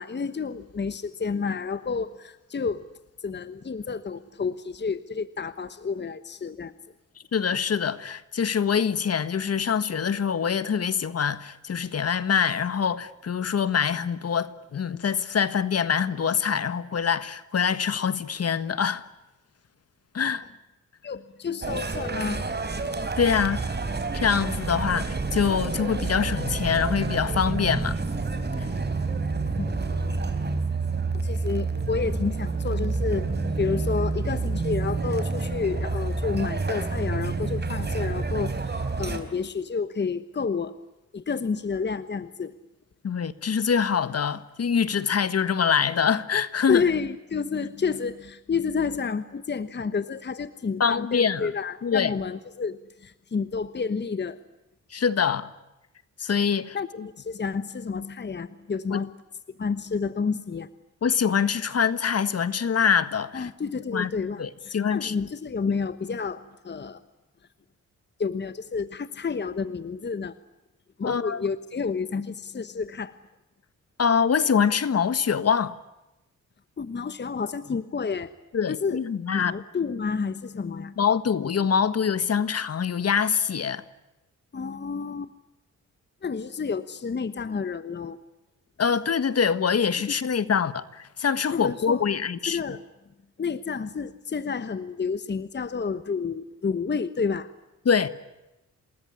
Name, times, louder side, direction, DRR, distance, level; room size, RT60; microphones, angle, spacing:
voice 1, 0.0-2.9 3.2-6.7 21.0-22.4 29.6-30.3 31.1-40.7 41.1-42.5 46.7-54.4 56.7-56.9 57.2-59.1 59.6-60.7 63.3-67.0 68.2-70.3 71.0-73.1 76.8-78.3 78.7-79.0 79.3-80.9 84.5-85.3 86.2-88.2 90.0-90.1 90.4-90.5 91.5-92.1 92.5-92.8 93.4-97.5, left 5 dB, 35° left, 1.2 m, -30 dB
voice 2, 7.3-19.0 20.1-20.4 23.2-23.8 24.1-28.0 28.6-28.7 43.0-46.8 50.8-51.5 51.8-52.1 54.9-55.5 56.2-57.1 58.9-59.0 61.0-63.5 63.9-64.1 64.4-65.3 71.0-71.4 74.0-75.7 78.5-79.5 81.0-83.8 88.8-92.6 97.8-98.1, left 7 dB, 55° left, 1.6 m, -24 dB
sound 1, 21.6-39.2, right 3 dB, 35° right, 4.2 m, -28 dB
28.0 x 20.0 x 9.7 m
cardioid pair, 90°, 30 cm